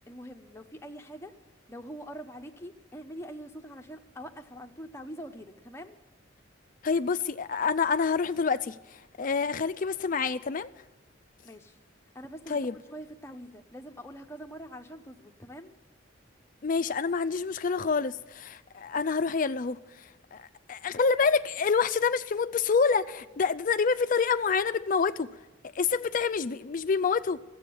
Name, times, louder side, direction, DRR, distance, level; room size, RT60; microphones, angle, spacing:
voice 1, 0.1-1.4 1.7-6.0 11.4-11.8 12.1-15.7, equal, 15° left, 0.7 m, -44 dB
voice 2, 6.8-10.7 12.5-12.8 16.6-25.3 25.7-27.4, left 5 dB, 40° left, 0.4 m, -27 dB
14.0 x 7.7 x 9.9 m
head